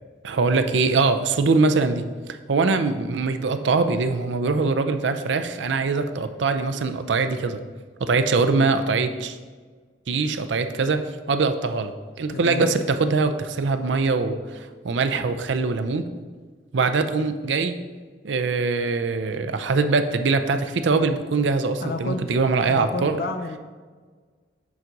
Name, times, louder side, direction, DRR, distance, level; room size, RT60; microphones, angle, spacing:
voice 1, 0.2-2.1 2.5-7.6 8.0-9.4 10.1-11.0 11.3-11.9 12.2-16.0 16.7-17.7 18.2-23.2, right 4 dB, 75° right, 9 dB, 0.5 m, -22 dB
voice 2, 12.3-12.7 21.8-22.3 22.6-23.6, left 2 dB, 55° left, 6 dB, 0.4 m, -31 dB
7.1 x 4.7 x 3.9 m, 1.5 s
head